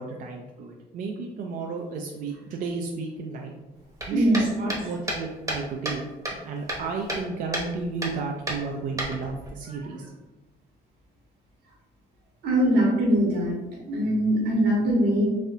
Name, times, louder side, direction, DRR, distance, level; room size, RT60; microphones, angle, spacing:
voice 1, 0.0-3.5 4.1-6.0 6.4-10.1, right 4 dB, 55° right, 1 dB, 0.4 m, -33 dB
sound 1, 4.0-6.0 6.2-7.3 7.5-7.7 8.0-8.2 8.5-9.5, right 1 dB, 20° right, 0.9 m, -31 dB
voice 2, 4.1-4.8 9.7-9.8 12.4-13.6 13.9-15.3, right 1 dB, 90° right, -3 dB, 1.3 m, -22 dB
4.0 x 2.7 x 2.6 m, 1.1 s
cardioid pair, 110°, 17 cm